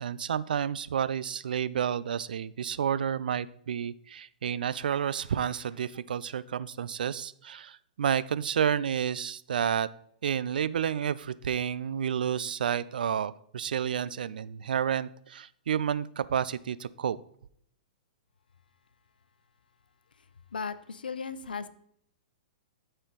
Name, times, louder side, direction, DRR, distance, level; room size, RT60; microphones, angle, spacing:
voice 1, 0.0-9.9 10.2-17.2, right 8 dB, 75° right, 17 dB, 0.4 m, -30 dB
voice 2, 20.1-21.7, left 5 dB, 90° left, 13 dB, 0.7 m, -37 dB
13.0 x 4.4 x 3.8 m, 0.69 s
hypercardioid pair, 130°, 5 cm